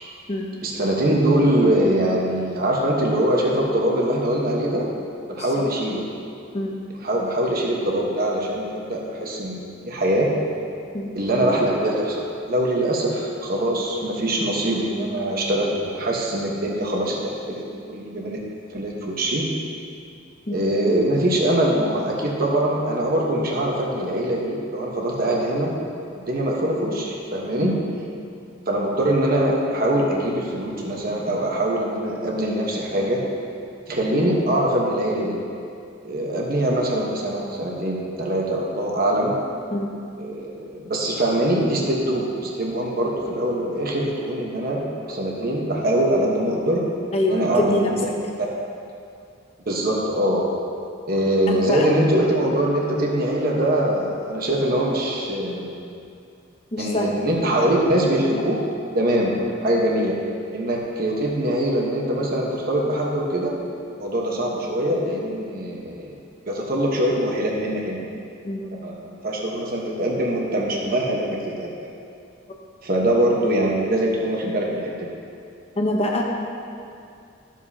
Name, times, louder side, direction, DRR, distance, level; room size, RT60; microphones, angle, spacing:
voice 1, 0.6-4.9 5.3-6.0 7.0-10.3 11.1-17.6 17.9-18.4 18.7-19.5 20.5-25.7 26.1-27.8 28.7-33.2 33.9-35.4 36.0-39.3 40.2-46.8 47.3-47.9 49.7-50.5 51.1-55.7 56.8-58.6 58.9-59.3 59.6-60.2 60.5-63.5 64.0-66.1 66.5-68.0 68.8-71.7 72.8-75.1, right 1 dB, 50° right, -2 dB, 1.2 m, -23 dB
voice 2, 47.1-47.9 51.5-52.0 56.7-57.1 59.4-59.5 68.4-68.7 75.8-76.2, left 1 dB, 30° left, 0 dB, 0.9 m, -25 dB
13.0 x 7.5 x 2.8 m, 2.4 s
head